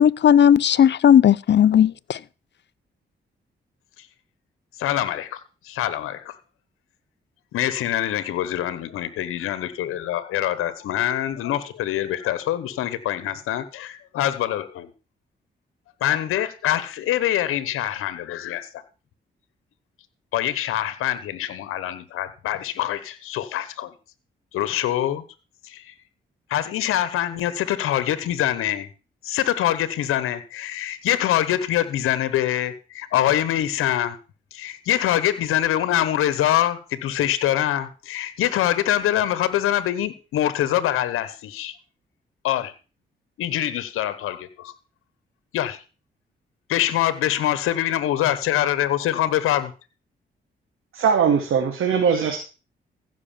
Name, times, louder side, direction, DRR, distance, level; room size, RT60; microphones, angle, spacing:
voice 1, 0.0-2.2, left 9 dB, 55° left, 0.7 m, -15 dB
voice 2, 4.8-5.4 5.6-6.4 7.5-14.9 16.0-18.8 20.3-23.9 24.5-25.2 25.6-25.9 26.5-28.9 29.2-34.2 34.5-41.8 42.4-42.7 43.4-44.7 45.5-45.8 46.7-49.7, left 12 dB, 90° left, 1.1 m, -24 dB
voice 3, 50.9-52.4, right 6 dB, 80° right, 2.5 m, -20 dB
15.0 x 6.2 x 7.2 m
supercardioid pair, 60°, 21 cm